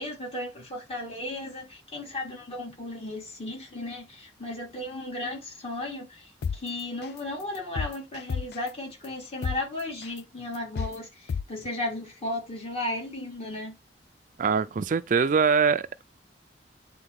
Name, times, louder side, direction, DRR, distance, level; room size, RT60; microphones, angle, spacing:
voice 1, 0.0-13.7, left 1 dB, 35° left, 3.6 m, -35 dB
sound 1, 6.4-6.6 7.0-7.2 7.5-8.7 9.0-9.1 9.4-9.6 10.0-10.2 10.5-10.9 11.3-11.4, left 6 dB, 60° left, 0.3 m, -30 dB
voice 2, 14.4-16.0, right 5 dB, 45° right, 0.4 m, -23 dB
9.7 x 4.0 x 3.5 m
head